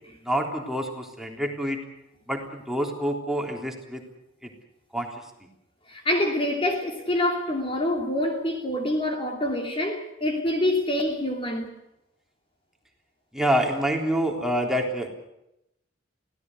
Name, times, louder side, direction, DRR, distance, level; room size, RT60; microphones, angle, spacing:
voice 1, 0.2-1.8 2.3-4.0 4.4-4.5 4.9-5.1 13.3-15.1, equal, ahead, 3.5 m, -27 dB
voice 2, 5.9-11.7, left 1 dB, 30° left, 2.9 m, -26 dB
24.0 x 17.5 x 8.0 m
head